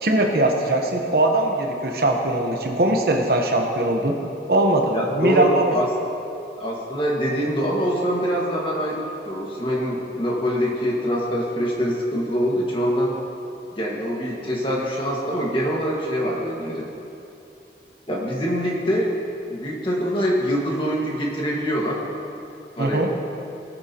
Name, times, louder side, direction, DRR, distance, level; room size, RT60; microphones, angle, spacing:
voice 1, 0.0-4.1 4.5-5.7 22.8-23.1, right 1 dB, 55° right, 2 dB, 1.1 m, -21 dB
voice 2, 4.9-5.9 6.6-13.1 13.7-16.9 18.1-19.1 19.5-22.0 22.7-23.1, equal, 30° left, -3 dB, 1.8 m, -24 dB
18.5 x 9.0 x 3.0 m, 2.7 s
head